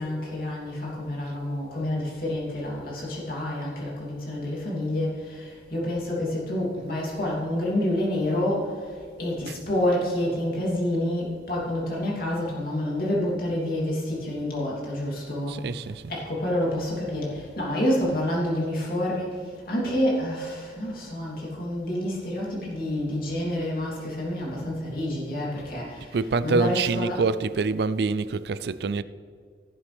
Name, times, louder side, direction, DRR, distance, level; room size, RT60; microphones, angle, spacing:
voice 1, 0.0-8.6 9.2-15.5 16.1-19.3 19.7-25.8 26.4-27.2, left 1 dB, 50° left, 3.0 m, -28 dB
voice 2, 15.5-16.0 26.1-29.0, right 4 dB, 60° right, 0.4 m, -26 dB
17.0 x 7.3 x 3.4 m
head